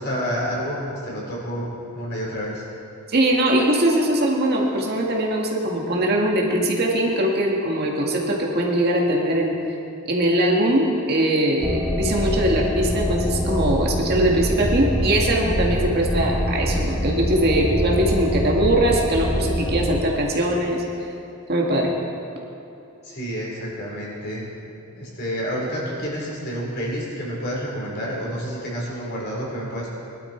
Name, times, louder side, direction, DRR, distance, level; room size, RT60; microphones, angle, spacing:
voice 1, 0.0-1.7 1.9-2.5 23.1-24.4 25.0-29.9, equal, 50° left, -5 dB, 4.5 m, -29 dB
voice 2, 3.1-9.6 10.1-20.8 21.5-21.9, right 1 dB, 45° right, -1 dB, 2.0 m, -21 dB
sound 1, 11.6-20.0, equal, ahead, 1.3 m, -24 dB
21.5 x 12.0 x 4.6 m, 2.7 s
head